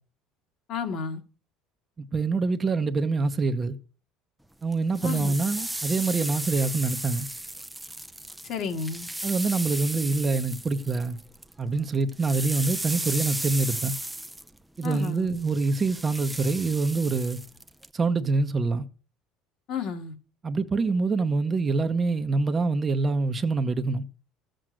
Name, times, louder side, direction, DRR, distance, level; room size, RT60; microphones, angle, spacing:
voice 1, 0.7-1.2 5.0-5.3 8.4-9.1 14.8-15.3 19.7-20.1, left 6 dB, 50° left, 1.8 m, -32 dB
voice 2, 2.1-3.7 4.6-7.3 9.2-11.2 11.6-13.9 14.8-17.4 17.9-18.9 20.4-24.0, right 3 dB, 20° right, 0.9 m, -25 dB
sound 1, 4.7-11.5 11.8-17.9, right 1 dB, 5° right, 0.5 m, -35 dB
14.0 x 7.8 x 6.3 m
cardioid pair, 145°, 0 cm